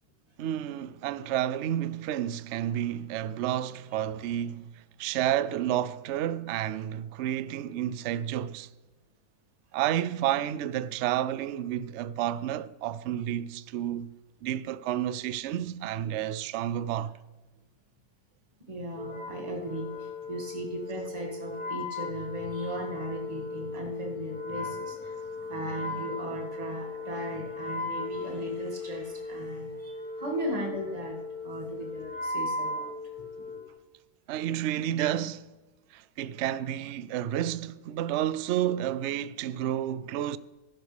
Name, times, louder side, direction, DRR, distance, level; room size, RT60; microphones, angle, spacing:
voice 1, 0.4-4.6 5.0-8.7 9.7-14.1 14.4-17.1 34.3-35.5 35.9-40.4, right 11 dB, 65° right, 0.7 m, -30 dB
voice 2, 18.7-32.9 33.2-33.6, right 1 dB, 25° right, 2.3 m, -37 dB
Wind instrument woodwind instrument, 19.0-33.7, left 3 dB, 75° left, 2.8 m, -37 dB
14.5 x 11.0 x 3.5 m
omnidirectional pair, 1.6 m